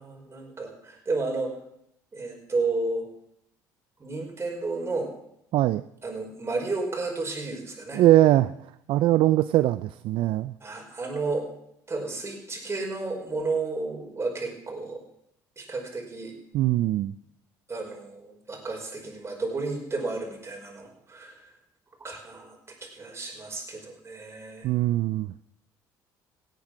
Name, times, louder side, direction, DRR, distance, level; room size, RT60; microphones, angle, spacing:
voice 1, 0.0-1.5 2.1-3.1 4.0-5.1 6.0-8.0 10.6-11.5 11.9-15.0 15.6-16.3 17.7-21.5 22.0-22.6 22.9-24.7, right 3 dB, 25° right, 1 dB, 5.2 m, -32 dB
voice 2, 5.5-5.8 7.9-8.5 8.9-10.5 16.5-17.1 24.6-25.3, right 14 dB, 65° right, 15 dB, 0.5 m, -21 dB
17.0 x 9.1 x 6.1 m, 0.76 s
hypercardioid pair, 60°, 10 cm